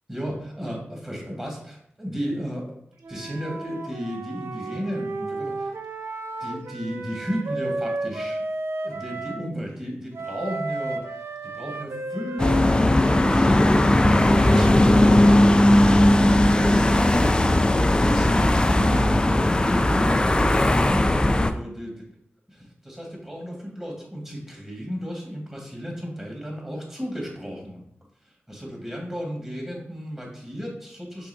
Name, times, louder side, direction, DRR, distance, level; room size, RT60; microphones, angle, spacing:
voice 1, 0.1-2.8 3.1-5.7 6.4-8.4 8.8-13.6 13.8-15.7 16.4-21.1 21.5-22.0 22.5-27.8 28.2-31.3, equal, 10° right, -1 dB, 1.7 m, -34 dB
Wind instrument woodwind instrument, 3.0-9.4 10.1-16.2, right 3 dB, 75° right, 0.5 m, -33 dB
sound 1, 12.4-21.5, left 1 dB, 20° left, 0.3 m, -18 dB
5.5 x 3.5 x 2.7 m, 0.72 s
wide cardioid pair, 60°, 4 cm